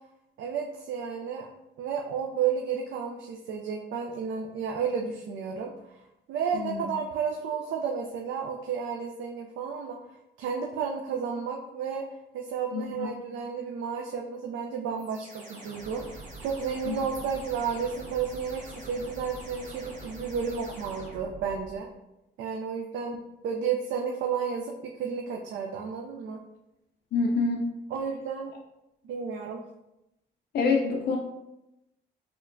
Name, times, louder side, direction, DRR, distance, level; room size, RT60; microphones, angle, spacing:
voice 1, 0.4-1.5 1.8-6.0 6.3-10.0 10.4-12.1 12.3-21.9 22.4-26.4 27.9-28.5 29.0-29.6, right 6 dB, 75° right, 1 dB, 0.4 m, -32 dB
voice 2, 6.5-6.8 12.7-13.1 16.9-17.0 27.1-27.7 30.5-31.2, left 4 dB, 55° left, 0 dB, 0.4 m, -26 dB
sound 1, 15.0-21.8, right 2 dB, 40° right, 1.0 m, -44 dB
4.3 x 2.2 x 2.5 m, 0.91 s
cardioid pair, 90°, 20 cm